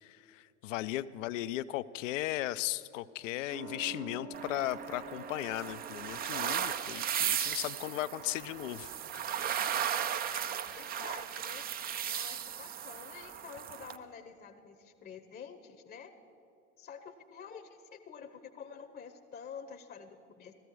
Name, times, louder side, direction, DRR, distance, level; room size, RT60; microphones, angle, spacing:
voice 1, 0.0-9.2, left 15 dB, 65° left, 16 dB, 0.5 m, -37 dB
sound 1, 3.5-10.6 10.9-11.0, right 4 dB, 80° right, 2.6 m, -50 dB
sound 2, 4.3-14.0, right 9 dB, 25° right, 0.4 m, -36 dB
voice 2, 10.3-11.7 12.1-16.1 16.8-20.5, left 7 dB, 25° left, 7 dB, 0.8 m, -49 dB
16.0 x 14.0 x 4.7 m, 2.8 s
figure-of-eight pair, 75°, 41 cm